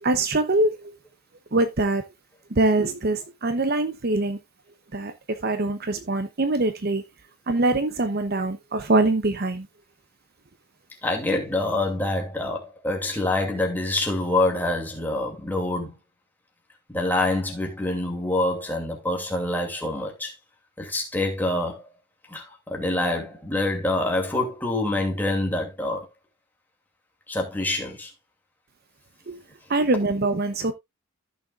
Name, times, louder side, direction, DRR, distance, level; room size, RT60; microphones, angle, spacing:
voice 1, 0.0-0.9 1.5-2.0 2.5-4.4 4.9-7.0 7.5-9.7 29.3-29.4 29.7-30.7, right 2 dB, 45° right, 0.8 m, -23 dB
voice 2, 11.0-16.0 16.9-20.3 20.8-21.8 22.3-26.1 27.3-28.1, left 2 dB, 10° left, 2.5 m, -26 dB
14.5 x 6.4 x 2.4 m
head